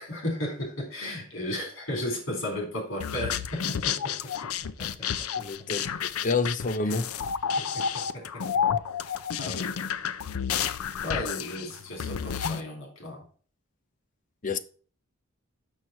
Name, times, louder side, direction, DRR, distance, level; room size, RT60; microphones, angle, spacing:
voice 1, 0.0-4.5 4.8-5.3 6.8-7.0 7.6-8.4 9.4-9.8 11.0-13.2, left 1 dB, 60° left, 3.7 m, -35 dB
sound 1, 3.0-12.6, left 7 dB, 90° left, 0.5 m, -30 dB
voice 2, 5.4-7.1 14.4-14.6, left 4 dB, 35° left, 0.6 m, -28 dB
6.3 x 6.3 x 4.1 m
head